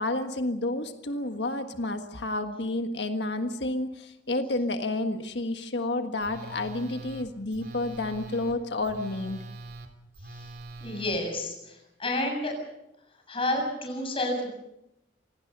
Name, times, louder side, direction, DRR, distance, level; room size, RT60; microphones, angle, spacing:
voice 1, 0.0-9.4, left 2 dB, 70° left, 7 dB, 1.6 m, -30 dB
Telephone, 6.2-11.2, right 2 dB, 60° right, 3.2 m, -43 dB
voice 2, 10.8-12.5 13.3-14.5, left 1 dB, 30° left, 2 dB, 7.5 m, -30 dB
26.5 x 18.5 x 6.8 m, 0.86 s
head